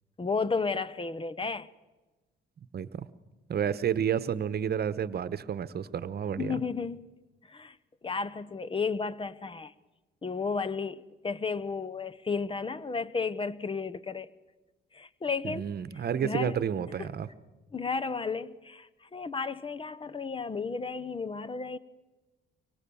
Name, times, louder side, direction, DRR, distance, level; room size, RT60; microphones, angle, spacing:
voice 1, 0.2-1.7 6.4-7.1 7.4-7.8 8.0-9.7 10.2-14.3 14.9-15.6 16.2-16.6 17.0-17.1 17.7-21.8, left 4 dB, 25° left, 0.9 m, -33 dB
voice 2, 2.7-3.1 3.5-6.6 15.4-17.3, right 8 dB, 55° right, 1.1 m, -30 dB
24.5 x 23.5 x 7.1 m
cardioid pair, 90°, 20 cm